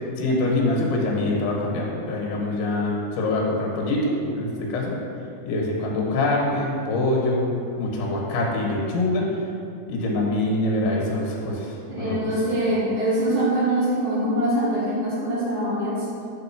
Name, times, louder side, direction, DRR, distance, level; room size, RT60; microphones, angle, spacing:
voice 1, 0.2-5.0 5.5-7.5 7.8-9.3 9.9-12.3, left 2 dB, 80° left, -2 dB, 3.1 m, -24 dB
voice 2, 11.9-16.0, right 1 dB, 90° right, -10 dB, 1.1 m, -23 dB
6.4 x 4.4 x 5.8 m, 2.6 s
omnidirectional pair, 4.6 m